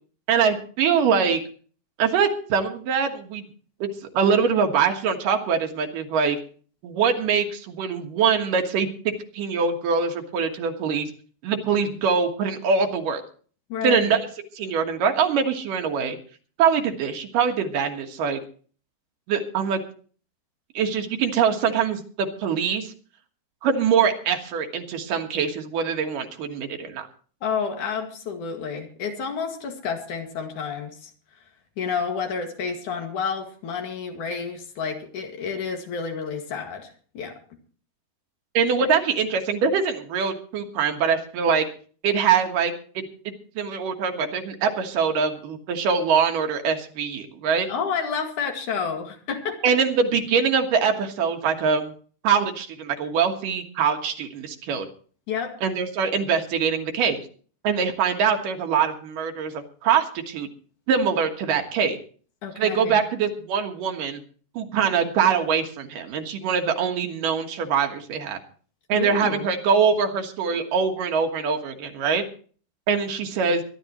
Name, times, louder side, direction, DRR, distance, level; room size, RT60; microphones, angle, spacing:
voice 1, 0.3-1.4 2.0-3.5 3.8-3.9 4.1-6.4 6.8-11.1 11.4-13.2 13.8-14.3 14.6-16.2 16.6-18.4 19.3-19.8 20.7-22.9 23.6-27.1 38.5-41.6 42.0-43.0 43.6-47.7 49.6-51.9 52.2-54.9 55.6-57.2 57.6-60.5 60.9-62.0 62.6-64.2 64.6-68.4 68.9-72.2 72.9-73.6, right 6 dB, 75° right, 5 dB, 3.1 m, -23 dB
voice 2, 13.7-14.2 27.4-31.1 31.8-36.9 37.1-37.4 38.8-38.9 47.7-49.6 55.3-55.5 62.4-63.0 68.9-69.5, left 6 dB, 65° left, 4 dB, 3.4 m, -30 dB
22.5 x 11.5 x 3.0 m, 0.43 s
omnidirectional pair, 3.8 m